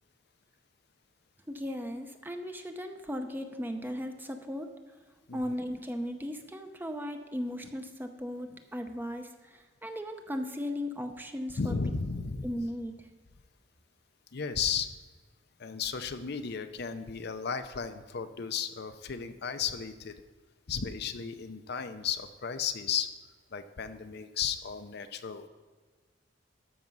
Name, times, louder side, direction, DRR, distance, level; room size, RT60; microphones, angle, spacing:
voice 1, 1.5-4.7 5.3-11.7 12.4-12.9, equal, 10° right, 6 dB, 0.7 m, -37 dB
voice 2, 11.6-12.5 14.3-14.9 15.6-20.1 20.7-23.1 23.5-25.5, left 6 dB, 55° left, 9 dB, 0.6 m, -34 dB
13.5 x 6.0 x 5.3 m, 1.4 s
head